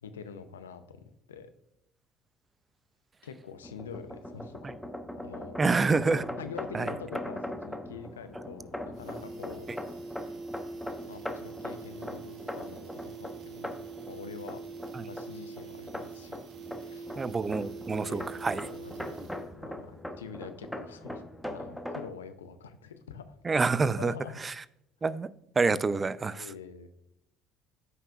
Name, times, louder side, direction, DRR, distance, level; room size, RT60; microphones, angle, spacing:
voice 1, 0.0-1.5 3.2-4.7 5.2-5.6 6.4-9.7 10.1-10.3 11.1-13.8 14.1-14.6 15.0-16.4 16.8-17.1 18.0-19.2 19.6-23.4 24.0-24.4 26.4-26.9, left 6 dB, 85° left, 0.6 m, -45 dB
sound 1, 3.6-22.1, left 1 dB, ahead, 1.0 m, -41 dB
voice 2, 5.6-6.3 6.7-6.9 14.9-15.0 17.2-18.7 23.4-24.1 24.4-24.5 25.0-25.3 25.6-26.4, right 4 dB, 30° right, 0.4 m, -27 dB
sound 2, 8.0-8.1 8.4-8.5 8.8-19.6 19.9-20.0, right 5 dB, 55° right, 1.0 m, -44 dB
14.0 x 5.5 x 2.4 m
hypercardioid pair, 60°, 0 cm